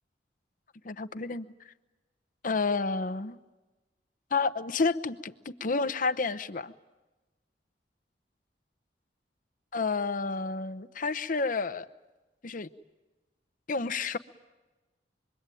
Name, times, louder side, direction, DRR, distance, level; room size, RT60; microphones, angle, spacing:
voice 1, 0.8-1.5 2.4-3.4 4.3-6.7 9.7-11.8 12.4-12.7 13.7-14.2, left 4 dB, 50° left, 11 dB, 0.9 m, -30 dB
26.0 x 22.5 x 9.1 m, 1.2 s
head